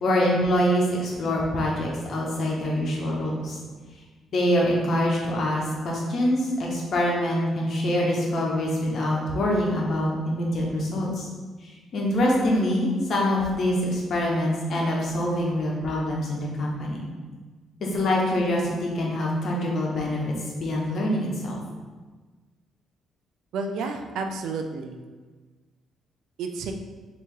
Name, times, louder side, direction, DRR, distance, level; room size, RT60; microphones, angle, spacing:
voice 1, 0.0-3.6 4.3-11.3 11.6-17.0 17.8-20.2 20.5-21.6, left 1 dB, 60° left, -2 dB, 1.1 m, -25 dB
voice 2, 23.5-25.0 26.4-26.7, right 4 dB, 80° right, 5 dB, 0.5 m, -31 dB
3.5 x 3.0 x 4.6 m, 1.4 s
cardioid pair, 90°, 0 cm